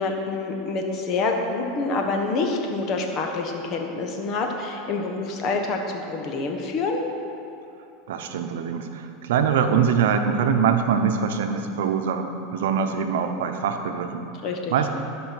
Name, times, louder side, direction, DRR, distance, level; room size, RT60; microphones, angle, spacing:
voice 1, 0.0-7.0 14.4-14.7, left 3 dB, 45° left, 3 dB, 1.4 m, -27 dB
voice 2, 8.1-14.2 14.7-14.9, right 7 dB, 80° right, 7 dB, 0.8 m, -23 dB
12.0 x 5.5 x 6.0 m, 2.7 s
supercardioid pair, 125°, 0 cm